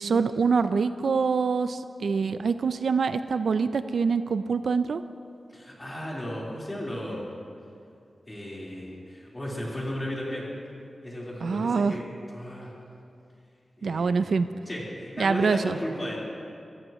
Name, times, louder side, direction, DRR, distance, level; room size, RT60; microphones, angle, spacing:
voice 1, 0.0-5.0 11.4-11.9 13.8-14.5 15.2-15.8, right 5 dB, 75° right, 11 dB, 0.4 m, -25 dB
voice 2, 5.5-7.2 8.3-10.4 11.0-12.7 13.8-14.3 14.7-16.2, equal, 15° left, -5 dB, 4.0 m, -35 dB
26.5 x 14.0 x 3.1 m, 2.5 s
wide cardioid pair, 130°, 0 cm